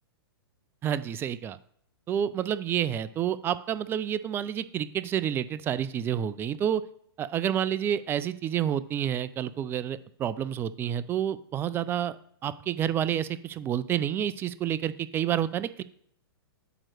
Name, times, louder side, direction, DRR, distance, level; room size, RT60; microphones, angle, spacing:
voice 1, 0.8-1.6 2.1-6.8 7.2-12.2 12.4-15.8, right 10 dB, 15° right, 16 dB, 0.3 m, -29 dB
8.7 x 3.0 x 6.3 m, 0.67 s
figure-of-eight pair, 110°, 13 cm